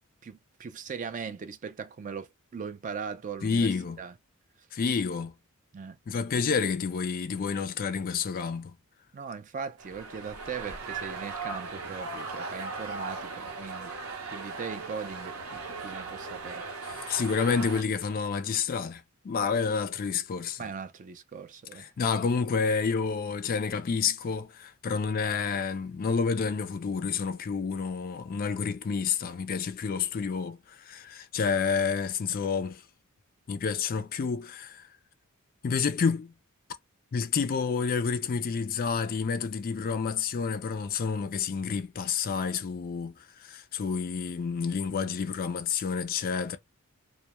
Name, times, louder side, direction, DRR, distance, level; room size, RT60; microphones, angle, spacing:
voice 1, 0.2-3.7 4.0-4.1 5.7-6.0 9.1-13.9 14.3-16.6 20.6-21.9, right 6 dB, 35° right, 0.3 m, -39 dB
voice 2, 3.4-4.0 4.7-5.3 6.1-8.8 16.9-20.7 21.7-32.8 33.5-34.9 35.6-36.3 37.1-43.1 43.4-46.6, left 5 dB, 40° left, 0.3 m, -29 dB
sound 1, 9.8-17.8, right 4 dB, 75° right, 0.7 m, -38 dB
2.2 x 2.0 x 2.9 m
head